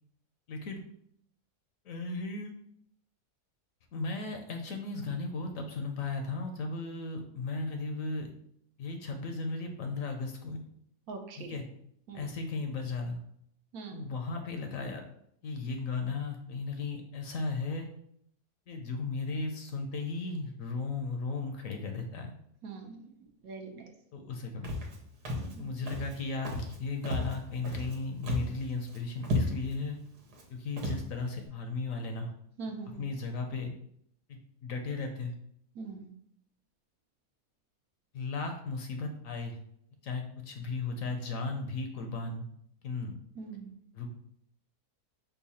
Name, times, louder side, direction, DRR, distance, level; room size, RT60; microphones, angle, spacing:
voice 1, 0.5-0.8 1.8-2.5 3.9-8.3 8.8-10.6 11.4-11.7 12.1-13.2 13.9-15.0 15.4-17.9 18.7-22.3 24.1-24.8 25.6-30.0 30.5-32.3 32.8-33.7 34.3-35.3 38.1-39.6 40.0-42.4 42.8-43.1 43.9-44.1, left 3 dB, 65° left, 4 dB, 1.0 m, -36 dB
voice 2, 11.1-11.6 12.1-12.2 13.7-14.0 22.6-23.0 23.4-23.9 25.4-25.7 32.6-33.0 35.8-36.1 43.4-43.7, right 4 dB, 70° right, 3 dB, 1.1 m, -42 dB
Walk footsteps, 24.6-25.0 25.3-25.6 25.9-26.2 26.5-26.8 27.0-28.0 28.2-28.6 28.9-29.0 29.2-29.8 30.3-30.4 30.8-31.0, left 1 dB, 85° right, 1.5 m, -33 dB
5.5 x 2.3 x 4.1 m, 0.69 s
omnidirectional pair, 1.7 m